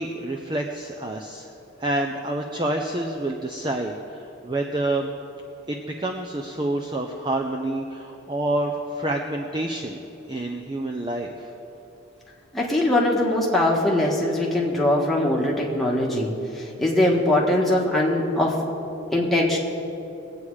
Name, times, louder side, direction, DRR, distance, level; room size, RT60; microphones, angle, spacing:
voice 1, 0.0-1.5 1.8-5.1 5.7-10.0 10.3-11.5, right 1 dB, 20° right, 3 dB, 0.6 m, -28 dB
voice 2, 12.5-18.6 19.1-19.6, left 1 dB, ahead, -4 dB, 1.6 m, -21 dB
21.0 x 8.6 x 4.8 m, 2.9 s
head